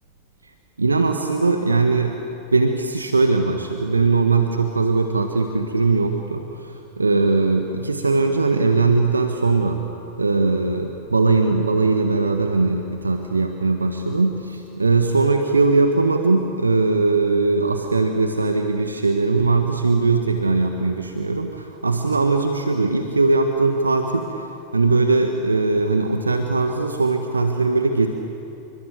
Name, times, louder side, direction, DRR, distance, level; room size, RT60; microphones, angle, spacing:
voice 1, 0.8-2.2 2.5-9.9 10.2-28.1, right 3 dB, 80° right, 5 dB, 1.6 m, -20 dB
29.0 x 25.0 x 8.0 m, 2.8 s
figure-of-eight pair, 90°, 0 cm